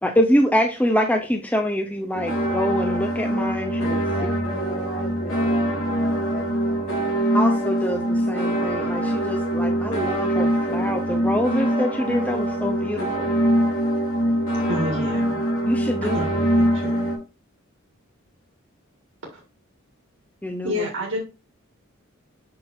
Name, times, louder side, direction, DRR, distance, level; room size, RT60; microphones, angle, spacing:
voice 1, 0.0-4.0 7.3-13.4 15.7-16.2 20.4-20.8, equal, 5° left, 0.6 m, -25 dB
sound 1, 2.1-17.2, right 1 dB, 80° left, 3.3 m, -23 dB
voice 2, 4.0-6.9, equal, 50° left, 2.1 m, -36 dB
voice 3, 14.6-15.4 16.0-17.1 19.3-19.4 20.6-21.2, left 1 dB, 75° right, 1.9 m, -29 dB
7.6 x 5.8 x 2.6 m
head